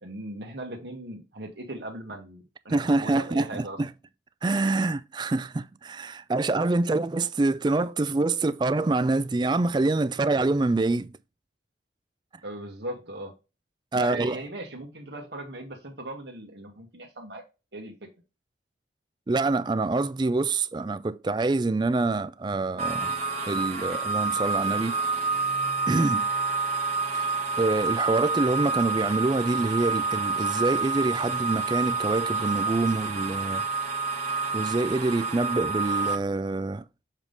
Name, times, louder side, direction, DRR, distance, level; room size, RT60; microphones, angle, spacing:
voice 1, 0.0-3.8 12.4-13.3 13.9-17.4 17.7-17.9, right 1 dB, 70° right, 1.5 m, -38 dB
voice 2, 2.7-3.9 4.4-11.2 13.9-14.4 19.3-23.1 23.5-25.0 25.9-26.3 27.1-27.3 27.6-33.6 34.5-36.8, right 2 dB, 25° right, 0.3 m, -26 dB
sound 1, 22.8-36.1, right 4 dB, 40° right, 1.3 m, -28 dB
7.2 x 3.6 x 3.9 m
head